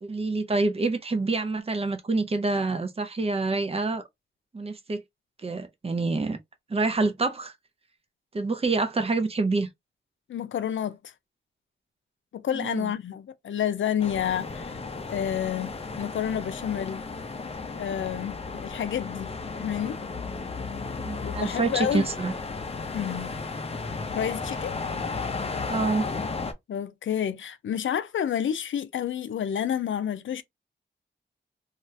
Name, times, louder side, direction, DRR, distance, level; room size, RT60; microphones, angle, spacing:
voice 1, 0.0-4.0 4.5-5.0 5.4-6.4 6.7-7.5 8.3-9.7 12.5-12.9 21.0-22.3 25.7-26.1, right 3 dB, 30° right, 0.5 m, -27 dB
voice 2, 10.3-11.1 12.3-14.8 15.1-17.0 17.7-19.3 19.6-20.0 21.1-22.1 22.9-23.3 24.1-24.8 26.7-30.4, left 9 dB, 85° left, 0.4 m, -29 dB
sound 1, 14.0-26.5, left 4 dB, 30° left, 0.5 m, -34 dB
2.7 x 2.4 x 3.1 m
wide cardioid pair, 135°, 19 cm